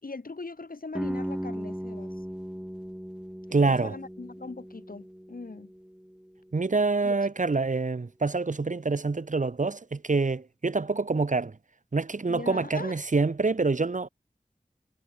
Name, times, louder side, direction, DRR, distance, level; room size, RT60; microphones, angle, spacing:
voice 1, 0.0-2.2 3.6-5.7 7.0-7.1 12.3-13.0, left 3 dB, 75° left, 3.6 m, -40 dB
sound 1, 1.0-6.7, equal, 5° right, 5.8 m, -37 dB
voice 2, 3.5-3.9 6.5-11.6 11.9-14.1, right 3 dB, 60° right, 1.0 m, -26 dB
wide cardioid pair, 45°, 15 cm